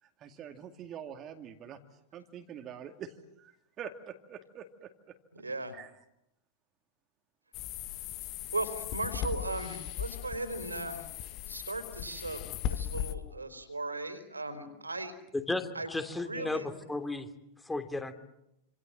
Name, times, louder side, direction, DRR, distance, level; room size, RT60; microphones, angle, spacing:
voice 1, 0.0-1.8 2.1-5.2 5.7-5.9, right 8 dB, 30° right, 6 dB, 2.3 m, -45 dB
voice 2, 5.3-5.7 7.9-8.2 8.5-11.2 11.5-12.4 12.7-15.1 15.7-15.9 16.2-16.7, right 2 dB, 80° right, 11 dB, 4.4 m, -37 dB
sound 1, 7.5-13.1, left 10 dB, 40° left, 1.8 m, -38 dB
voice 3, 15.5-17.3 17.6-18.1, left 2 dB, 5° left, 8 dB, 3.0 m, -34 dB
28.5 x 27.0 x 7.6 m, 0.83 s
figure-of-eight pair, 90°, 0 cm